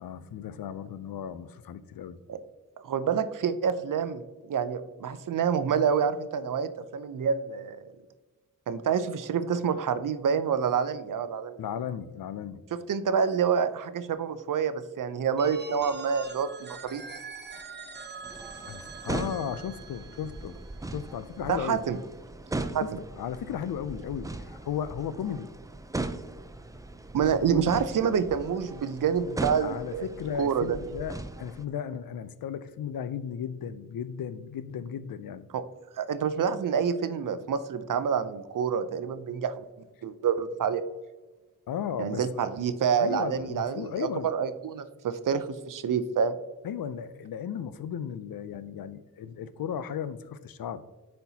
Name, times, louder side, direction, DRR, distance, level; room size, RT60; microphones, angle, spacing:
voice 1, 0.0-2.2 11.6-12.6 18.7-20.6 20.9-21.8 22.8-25.5 27.5-27.6 29.6-35.5 41.7-42.2 43.0-44.3 46.6-50.8, left 8 dB, 85° left, 14 dB, 0.5 m, -35 dB
voice 2, 2.8-7.8 8.7-11.6 12.9-17.0 21.5-22.0 22.7-22.8 27.1-30.1 30.4-30.8 35.5-35.6 36.0-39.6 40.0-40.8 42.0-46.4, right 7 dB, 65° right, 12 dB, 0.5 m, -27 dB
Telephone, 15.4-21.2, right 5 dB, 30° right, 0.8 m, -43 dB
sound 1, 18.2-31.6, right 2 dB, 10° right, 0.4 m, -39 dB
9.8 x 4.3 x 2.7 m, 1.2 s
wide cardioid pair, 75°, 34 cm